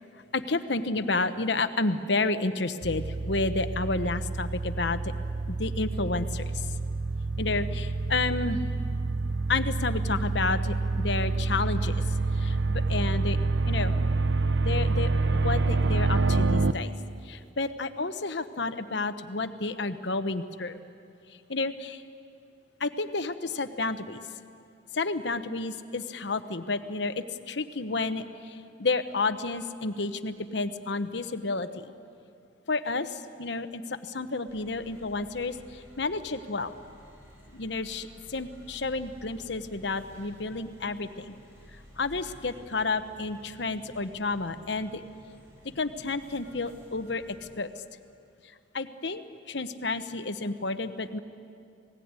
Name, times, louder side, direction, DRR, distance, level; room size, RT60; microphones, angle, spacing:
voice 1, 0.3-5.1 5.5-6.7 7.4-8.6 9.5-13.4 13.6-13.9 14.6-16.9 17.2-20.8 21.5-22.0 22.8-24.2 24.9-31.9 32.7-36.7 37.5-41.3 42.0-45.0 45.6-47.2 47.6-47.7 48.7-51.2, left 3 dB, 65° left, 10 dB, 1.1 m, -31 dB
cymbal-reverse, 2.8-16.7, right 3 dB, 65° right, 0.8 m, -27 dB
sound 1, 34.5-47.4, equal, 15° right, 6.6 m, -53 dB
28.0 x 19.0 x 9.7 m, 2.5 s
head